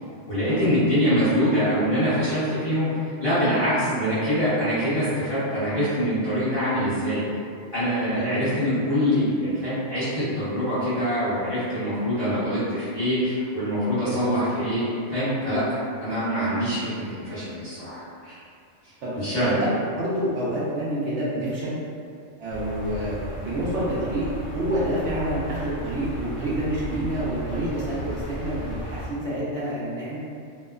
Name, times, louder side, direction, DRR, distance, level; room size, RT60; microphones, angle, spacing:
voice 1, 0.3-7.2 7.7-14.8 15.1-18.4 19.1-19.5, equal, 30° left, -15 dB, 1.0 m, -24 dB
voice 2, 3.8-4.3 8.1-8.4 14.0-14.3 16.7-17.0 19.0-19.1 19.4-21.8 22.4-24.2 24.5-30.2, right 1 dB, 70° right, -8 dB, 0.9 m, -28 dB
sound 1, 22.5-29.1, equal, 75° left, 1.1 m, -35 dB
2.8 x 2.0 x 2.3 m, 2.3 s
omnidirectional pair, 1.3 m